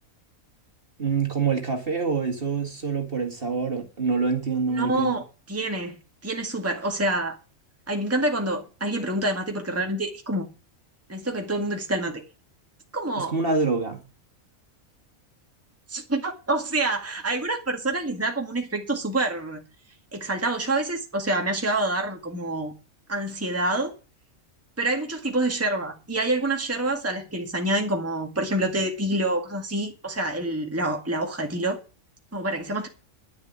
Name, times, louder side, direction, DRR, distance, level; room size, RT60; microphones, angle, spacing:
voice 1, 1.0-5.2 13.2-14.0, right 4 dB, 40° right, 2.3 m, -26 dB
voice 2, 4.7-6.0 6.2-7.4 7.9-10.5 11.1-12.2 12.9-13.4 15.9-19.6 20.1-22.7 23.1-23.9 24.8-31.8 32.3-32.9, right 2 dB, 10° right, 1.9 m, -27 dB
11.0 x 6.9 x 9.5 m
omnidirectional pair, 1.4 m